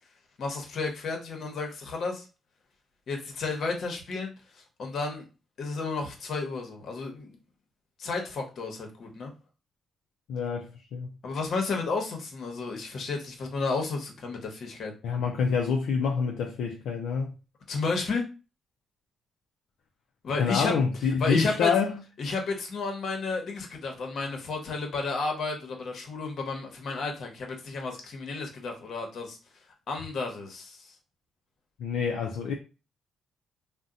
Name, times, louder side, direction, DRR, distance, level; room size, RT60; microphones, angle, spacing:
voice 1, 0.4-2.2 3.1-4.3 4.8-5.2 5.6-7.4 8.0-9.3 11.2-14.9 17.7-18.2 20.2-20.7 21.2-21.7 22.2-29.4 29.9-30.9, left 4 dB, 65° left, 0.9 m, -32 dB
voice 2, 10.3-11.1 15.0-17.3 20.4-22.0 31.8-32.5, left 5 dB, 85° left, 0.4 m, -27 dB
2.6 x 2.1 x 3.7 m
cardioid pair, 90°, 0 cm